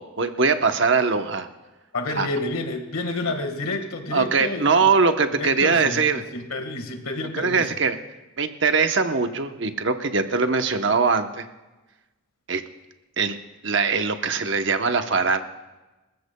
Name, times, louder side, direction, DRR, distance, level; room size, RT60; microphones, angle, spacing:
voice 1, 0.0-1.5 2.2-2.3 4.1-6.2 7.3-8.0 8.4-11.4 12.5-12.6 13.2-13.4 13.6-15.5, right 4 dB, 55° right, 7 dB, 0.9 m, -21 dB
voice 2, 1.9-4.8 5.4-7.7, left 2 dB, 80° left, 5 dB, 1.7 m, -29 dB
25.5 x 14.5 x 2.3 m, 1.1 s
head